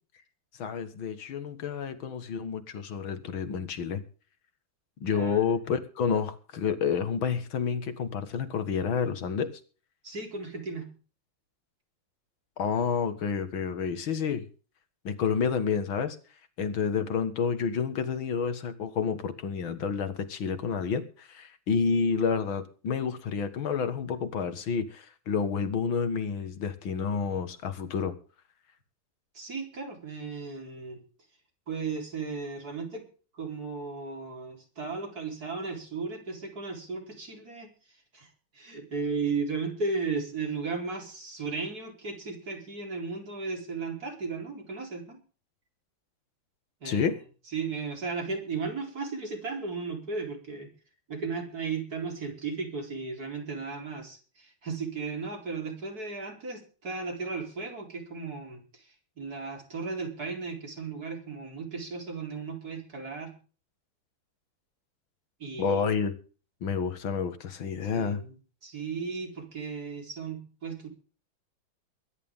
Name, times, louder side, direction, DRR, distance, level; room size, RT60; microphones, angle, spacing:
voice 1, 0.6-4.0 5.0-9.5 12.6-14.5 15.0-16.2 16.6-28.1 46.8-47.2 65.6-66.1 66.6-68.2, left 6 dB, 85° left, 10 dB, 2.4 m, -29 dB
voice 2, 5.1-5.4 10.0-10.9 29.3-31.0 31.7-33.1 33.3-37.7 38.1-45.2 46.8-47.2 47.5-50.7 51.1-63.3 65.4-66.0 67.9-68.4 68.6-70.9, right 4 dB, 50° right, 2 dB, 4.7 m, -35 dB
22.5 x 11.0 x 3.7 m, 0.38 s
omnidirectional pair, 2.1 m